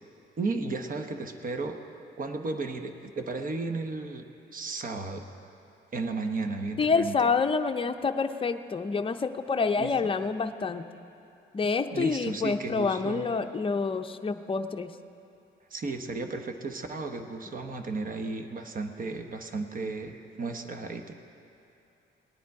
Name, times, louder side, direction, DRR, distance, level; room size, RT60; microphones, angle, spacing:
voice 1, 0.4-1.8 2.2-4.2 4.5-5.2 5.9-7.1 9.8-9.9 11.9-13.2 15.7-21.1, right 3 dB, 45° right, 6 dB, 1.0 m, -34 dB
voice 2, 6.8-10.8 11.5-14.9, left 4 dB, 25° left, 7 dB, 0.6 m, -27 dB
18.5 x 10.0 x 4.8 m, 2.8 s
cardioid pair, 90°, 20 cm